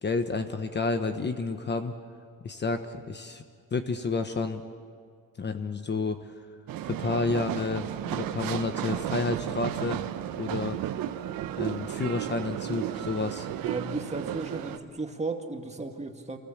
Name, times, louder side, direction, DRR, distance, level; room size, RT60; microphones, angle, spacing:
voice 1, 0.0-2.0 2.4-3.4 3.7-4.6 5.4-6.3 6.8-10.0 10.4-10.8 11.6-13.5, left 3 dB, 30° left, 8 dB, 1.2 m, -30 dB
sound 1, 6.7-14.8, right 11 dB, 80° right, 1.1 m, -33 dB
voice 2, 13.6-16.4, right 3 dB, 20° right, 4 dB, 2.1 m, -34 dB
27.5 x 20.0 x 7.4 m, 2.1 s
cardioid pair, 110°, 34 cm